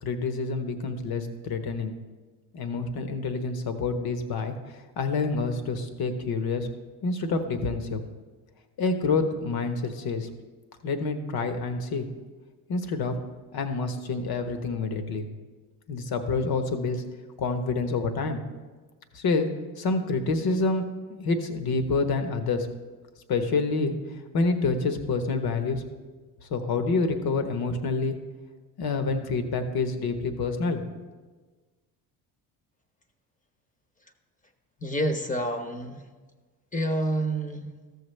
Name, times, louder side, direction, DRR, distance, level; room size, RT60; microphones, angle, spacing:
voice 1, 0.0-2.0 2.5-6.7 7.0-8.0 8.8-10.3 10.8-12.0 12.7-13.2 13.5-15.3 15.9-17.0 17.4-18.4 19.1-19.5 19.8-22.7 23.3-25.8 26.4-28.2 28.8-30.8, left 3 dB, 55° left, 7 dB, 1.1 m, -27 dB
voice 2, 34.8-36.0 36.7-37.7, right 1 dB, 15° left, 6 dB, 0.9 m, -28 dB
13.5 x 6.8 x 3.3 m, 1.4 s
supercardioid pair, 75°, 45 cm